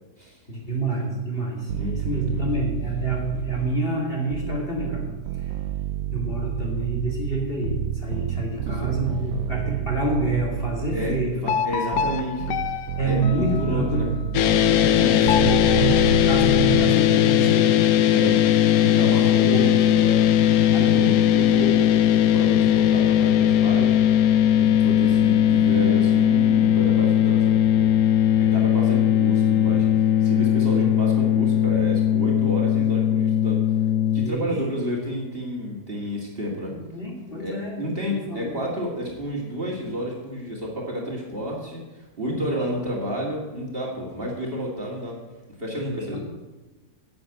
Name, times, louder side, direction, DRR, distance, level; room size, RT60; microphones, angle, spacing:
voice 1, 0.5-5.1 5.3-5.5 6.1-11.4 13.0-14.3 14.5-18.1 20.9-21.2 29.6-29.8 30.5-30.9 34.2-34.5 36.7-38.6 42.3-42.6 45.8-46.2, right 2 dB, 35° left, -2 dB, 2.4 m, -28 dB
voice 2, 1.7-2.4 8.6-8.9 10.9-11.1 11.4-14.1 14.8-15.8 18.1-20.3 20.7-21.9 22.3-24.0 24.6-27.9 28.4-33.6 34.1-36.7 37.4-45.2 45.6-46.2, equal, 35° right, -2 dB, 2.2 m, -30 dB
sound 1, 1.7-3.9 4.3-11.4 11.9-16.9, right 12 dB, 70° right, 0.9 m, -30 dB
sound 2, 11.5-14.1 15.2-17.0, left 8 dB, 85° left, 1.3 m, -30 dB
sound 3, 14.3-34.3, left 11 dB, 70° left, 1.0 m, -19 dB
10.5 x 7.0 x 8.0 m, 1.1 s
omnidirectional pair, 1.7 m